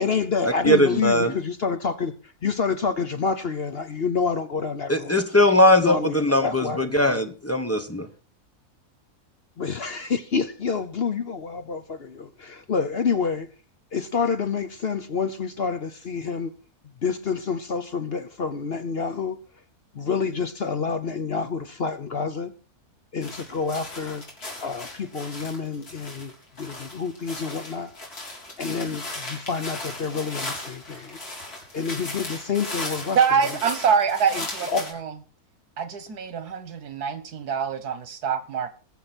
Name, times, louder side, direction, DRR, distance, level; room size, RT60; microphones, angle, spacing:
voice 1, 0.0-2.1 2.4-5.2 5.8-7.3 9.6-13.5 13.9-16.5 17.0-19.4 19.9-22.5 23.1-24.2 24.6-26.3 26.6-27.9 28.6-31.2 31.7-33.6 34.3-34.9, left 5 dB, 50° left, 0.9 m, -28 dB
voice 2, 0.6-1.3 4.9-8.1, left 1 dB, 10° left, 1.1 m, -20 dB
sound 1, 23.2-34.9, left 2 dB, 75° left, 4.1 m, -37 dB
voice 3, 33.2-35.1 35.8-38.7, right 6 dB, 85° right, 1.8 m, -25 dB
21.0 x 7.4 x 4.4 m
omnidirectional pair, 1.6 m